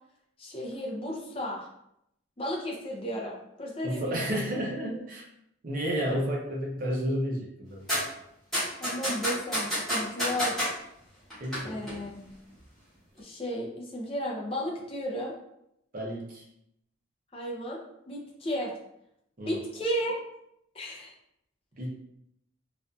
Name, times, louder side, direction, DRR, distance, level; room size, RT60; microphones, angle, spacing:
voice 1, 0.4-1.7 2.4-4.4 8.8-10.5 11.6-12.4 13.2-15.3 17.3-17.8 18.1-18.7 19.4-20.2 20.7-21.1, equal, 30° left, -2 dB, 0.5 m, -34 dB
voice 2, 3.8-5.3 5.6-8.0 11.4-11.8 15.9-16.4 19.4-19.6 21.8-21.9, equal, 45° right, -2 dB, 0.6 m, -31 dB
sound 1, 7.9-8.0 8.5-10.7 11.3-11.6 11.9-12.0, equal, ahead, 1.0 m, -28 dB
2.5 x 2.4 x 2.3 m, 0.77 s
head